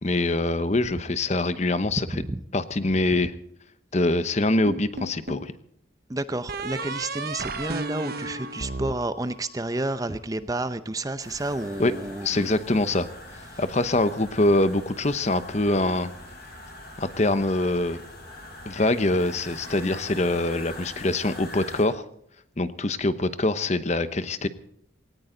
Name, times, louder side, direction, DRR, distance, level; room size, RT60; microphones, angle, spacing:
voice 1, 0.0-2.2 2.5-3.3 3.9-5.5 11.8-11.9 12.2-13.1 13.6-16.1 17.0-18.0 18.6-22.0 22.6-24.5, left 2 dB, 35° left, 12 dB, 0.9 m, -24 dB
sound 1, 4.7-5.5 6.5-9.8, right 2 dB, 55° right, 1.0 m, -34 dB
voice 2, 6.1-12.5, right 2 dB, 20° right, 12 dB, 0.6 m, -30 dB
sound 2, 11.2-21.8, left 1 dB, 55° left, 7.9 m, -43 dB
18.5 x 18.0 x 3.9 m, 0.70 s
head